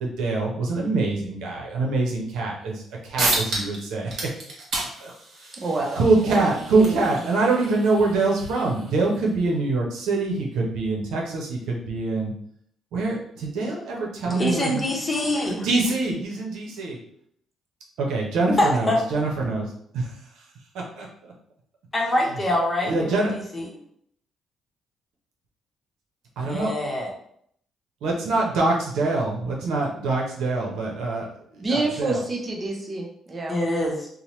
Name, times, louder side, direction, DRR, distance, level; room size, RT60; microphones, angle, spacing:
voice 1, 0.0-4.2 5.0-5.1 6.0-12.3 12.9-14.8 15.6-17.0 18.0-19.7 19.9-20.1 21.0-21.1 22.8-23.3 26.4-26.7 28.0-31.3 31.7-32.2, right 3 dB, 85° right, -1 dB, 0.7 m, -24 dB
sound 1, 2.8-2.9 3.2-3.8 4.1-9.2, right 2 dB, 65° right, 1.1 m, -31 dB
voice 2, 5.5-7.2 31.6-33.6, right 2 dB, 35° right, 0 dB, 0.7 m, -28 dB
voice 3, 14.3-15.7 18.6-19.0 21.9-23.7 26.5-27.1 33.5-34.1, left 1 dB, 20° left, -1 dB, 0.9 m, -24 dB
2.8 x 2.1 x 3.0 m, 0.67 s
cardioid pair, 90°, 0 cm